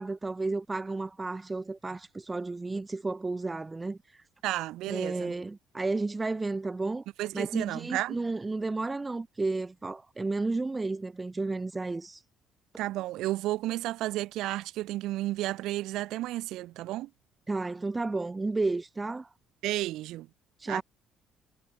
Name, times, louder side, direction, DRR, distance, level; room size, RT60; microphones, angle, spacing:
voice 1, 0.0-4.0 4.9-7.0 7.3-12.2 17.5-19.3 20.6-20.8, right 3 dB, 20° right, 0.4 m, -32 dB
voice 2, 4.4-5.3 7.2-8.2 12.8-17.1 19.6-20.3 20.7-20.8, right 16 dB, 80° right, 0.9 m, -32 dB
cardioid pair, 95°, 0 cm